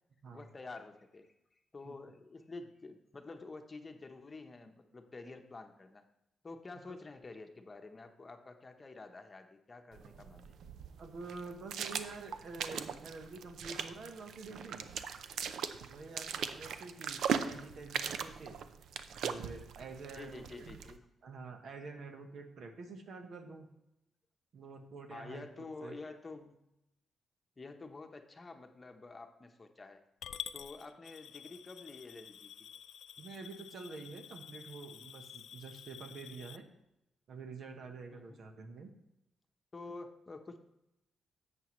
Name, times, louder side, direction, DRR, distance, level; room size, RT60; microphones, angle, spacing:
voice 1, 0.3-1.3 1.7-6.0 6.4-10.6 20.1-21.1 25.1-26.6 27.6-30.0 30.5-32.5 38.1-38.4 39.7-40.6, left 3 dB, 30° left, 5 dB, 0.9 m, -49 dB
sound 1, 9.9-21.0, right 7 dB, 85° right, 0.5 m, -40 dB
voice 2, 11.0-14.9 15.8-18.6 19.2-20.7 21.2-23.7 24.5-26.0 33.2-36.7 37.3-38.9, right 4 dB, 65° right, 6 dB, 1.2 m, -48 dB
Coin (dropping) / Glass, 30.2-36.6, left 9 dB, 80° left, 0.4 m, -49 dB
11.0 x 8.0 x 3.1 m, 0.87 s
cardioid pair, 100°, 0 cm